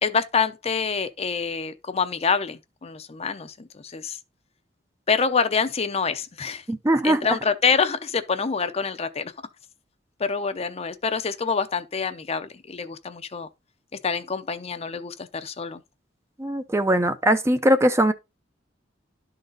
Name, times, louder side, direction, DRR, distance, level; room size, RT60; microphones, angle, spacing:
voice 1, 0.0-4.2 5.1-6.6 7.0-9.3 10.2-13.5 14.0-15.8, left 5 dB, 35° left, 0.6 m, -26 dB
voice 2, 6.7-7.2 16.4-18.1, right 1 dB, 15° right, 0.5 m, -20 dB
11.5 x 4.0 x 3.9 m
head